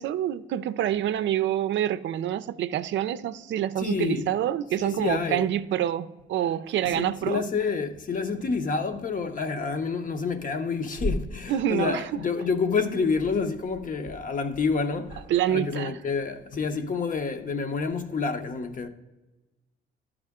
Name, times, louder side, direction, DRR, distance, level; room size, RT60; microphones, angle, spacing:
voice 1, 0.0-7.4 11.5-12.1 15.3-16.0, right 11 dB, 70° right, 0.4 m, -27 dB
voice 2, 3.8-4.3 4.8-5.4 6.8-15.2 15.5-18.9, left 4 dB, 40° left, 0.8 m, -28 dB
12.0 x 4.9 x 3.6 m
cardioid pair, 90°, 20 cm